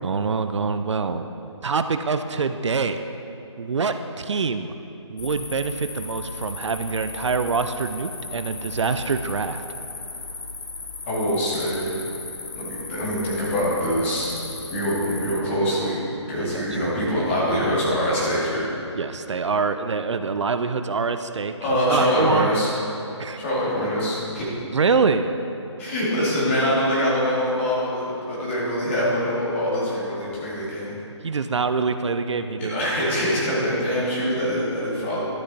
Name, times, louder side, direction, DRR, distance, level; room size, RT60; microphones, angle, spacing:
voice 1, 0.0-1.2 1.6-3.0 3.6-4.7 5.1-9.6 16.4-16.9 19.0-21.5 21.9-22.5 23.2-23.4 24.7-25.3 31.2-33.1, right 4 dB, 70° right, 9 dB, 0.5 m, -25 dB
sound 1, 5.2-15.4, left 3 dB, 60° left, 1.1 m, -36 dB
voice 2, 11.1-12.0 12.6-14.4 14.7-16.0 16.3-18.7 21.6-22.7 23.3-24.6 25.8-30.9 32.6-35.2, equal, 25° left, -7 dB, 2.2 m, -24 dB
11.5 x 6.4 x 4.1 m, 3.0 s
figure-of-eight pair, 160°, 16 cm